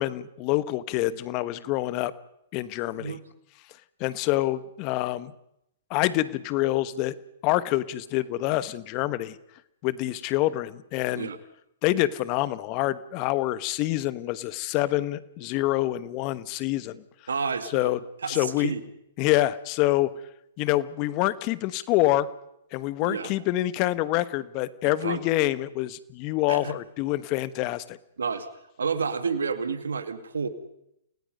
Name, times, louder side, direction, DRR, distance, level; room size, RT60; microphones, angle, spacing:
voice 1, 0.0-2.1 2.5-3.2 4.0-5.3 5.9-7.1 7.4-9.4 9.8-11.3 11.8-17.0 17.7-18.0 18.3-18.7 19.2-20.1 20.6-22.3 22.7-28.0, left 16 dB, 35° left, 16 dB, 1.2 m, -26 dB
voice 2, 17.3-17.9 18.2-18.8 23.0-23.3 24.9-25.2 26.5-26.7 28.2-28.5 28.8-30.5, right 5 dB, 80° right, 10 dB, 2.2 m, -30 dB
29.5 x 18.5 x 5.4 m, 0.78 s
hypercardioid pair, 125°, 0 cm